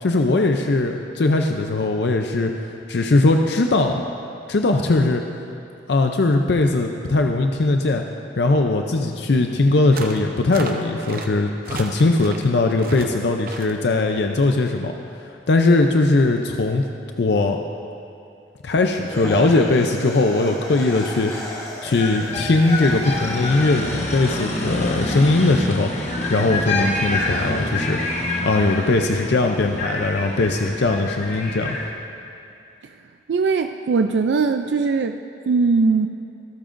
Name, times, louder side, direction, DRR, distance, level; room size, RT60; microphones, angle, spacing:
voice 1, 0.0-2.5 2.9-4.0 4.5-5.2 5.9-8.0 8.4-14.9 15.2-16.8 17.2-17.6 18.6-28.0 28.4-31.8, left 2 dB, 65° left, 4 dB, 0.5 m, -20 dB
sound 1, 10.0-10.2 10.5-11.3 11.6-12.5 12.8-13.1 13.5-13.8, right 3 dB, 50° right, 0.8 m, -34 dB
sound 2, 19.0-26.2, equal, 15° left, 1.3 m, -35 dB
sound 3, 22.0-31.9, left 2 dB, 35° left, 1.2 m, -27 dB
voice 2, 33.3-35.2 35.5-36.1, right 4 dB, 70° right, 7 dB, 0.4 m, -20 dB
25.0 x 8.8 x 2.6 m, 2.6 s
head